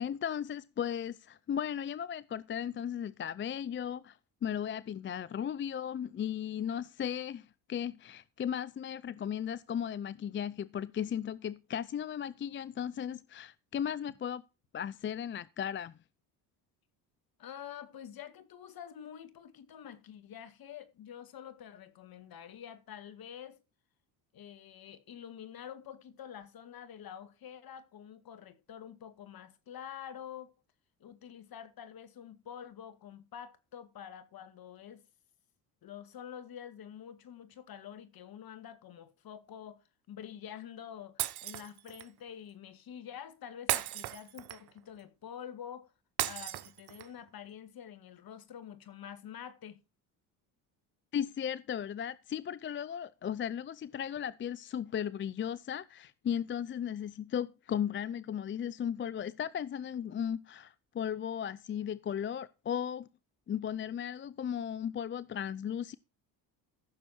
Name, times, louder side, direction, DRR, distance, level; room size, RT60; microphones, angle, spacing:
voice 1, 0.0-14.4 14.7-15.9 51.1-63.1 63.5-65.9, left 9 dB, 30° left, 0.5 m, -36 dB
voice 2, 17.4-23.6 24.3-30.5 31.0-35.0 35.8-39.8 40.1-45.9 46.3-49.8, left 9 dB, 55° left, 2.2 m, -47 dB
Shatter, 41.2-42.1 43.7-44.8 46.2-47.2, right 15 dB, 60° right, 1.1 m, -35 dB
15.0 x 6.9 x 4.4 m
supercardioid pair, 75°, 43 cm